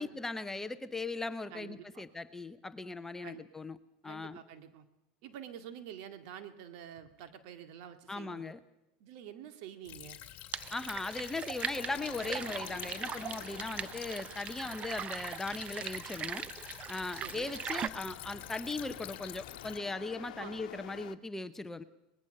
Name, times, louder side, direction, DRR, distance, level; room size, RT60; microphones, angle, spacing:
voice 1, 0.0-3.8 4.0-4.4 8.1-8.6 10.7-16.5 16.9-21.8, left 3 dB, 10° left, 11 dB, 0.9 m, -38 dB
voice 2, 1.5-2.0 3.2-3.4 4.0-4.9 5.2-8.6 9.0-10.2 17.2-17.5 20.4-20.5, right 9 dB, 65° right, 9 dB, 2.2 m, -48 dB
Stream / Trickle dribble, 9.9-19.8, left 13 dB, 45° left, 2.3 m, -48 dB
sound 1, 10.5-17.9, right 8 dB, 30° right, 0.7 m, -40 dB
sound 2, 11.7-21.2, left 12 dB, 85° left, 1.0 m, -51 dB
22.5 x 20.0 x 6.7 m, 0.89 s
supercardioid pair, 115°, 4 cm